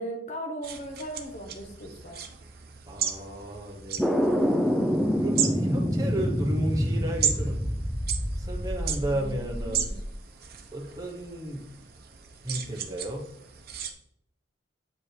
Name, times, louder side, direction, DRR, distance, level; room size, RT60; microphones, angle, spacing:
voice 1, 0.0-2.2 9.0-10.0, right 1 dB, 35° left, 2 dB, 0.9 m, -38 dB
sound 1, 0.6-13.9, right 8 dB, 50° right, 0.8 m, -36 dB
voice 2, 2.9-4.2 5.1-7.6 8.4-9.9 10.7-11.6 12.4-13.2, right 1 dB, 20° right, -1 dB, 0.9 m, -33 dB
sound 2, 4.0-10.1, equal, ahead, 0.4 m, -27 dB
7.5 x 5.3 x 3.2 m, 0.73 s
head